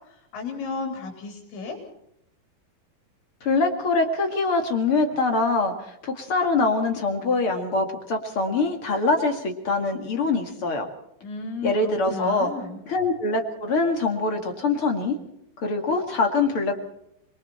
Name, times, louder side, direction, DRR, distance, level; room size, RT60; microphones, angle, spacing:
voice 1, 0.1-1.8 11.2-12.8, left 4 dB, 80° left, 3 dB, 6.4 m, -33 dB
voice 2, 3.4-10.9 11.6-12.5 12.9-15.2 15.6-16.8, left 3 dB, 40° left, 4 dB, 2.3 m, -24 dB
27.5 x 22.5 x 4.3 m, 0.77 s
omnidirectional pair, 5.1 m